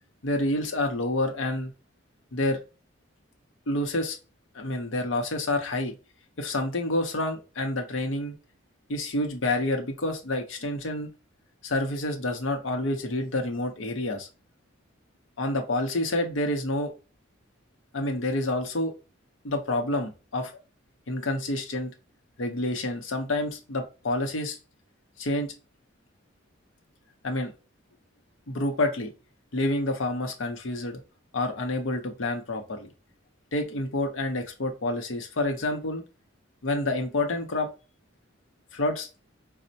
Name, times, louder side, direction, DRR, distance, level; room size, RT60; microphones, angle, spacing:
voice 1, 0.2-1.7 2.3-2.6 3.7-4.2 4.5-5.9 6.4-8.3 8.9-11.1 11.6-14.3 15.4-16.9 17.9-18.9 19.4-20.5 21.1-21.9 22.4-24.6 25.2-25.5 27.2-27.5 28.5-29.1 29.5-31.0 31.3-32.9 33.5-36.0 36.6-37.7 38.7-39.1, left 2 dB, 70° left, 4 dB, 0.7 m, -28 dB
4.2 x 2.1 x 2.6 m, 0.31 s
head